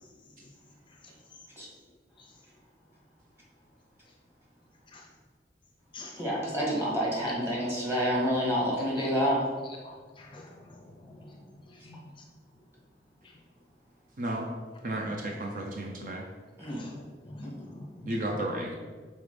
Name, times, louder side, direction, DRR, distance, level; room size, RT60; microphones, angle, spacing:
voice 1, 6.2-9.4 16.6-16.8 17.4-17.5, equal, 15° right, -5 dB, 1.8 m, -28 dB
voice 2, 9.8-12.3 13.2-13.4 14.9-15.0 16.6-18.1, left 2 dB, 30° left, 1 dB, 0.5 m, -47 dB
voice 3, 14.2-14.5 14.8-16.2 18.0-18.8, right 1 dB, 45° right, 1 dB, 0.6 m, -33 dB
5.6 x 4.0 x 5.0 m, 1.5 s
head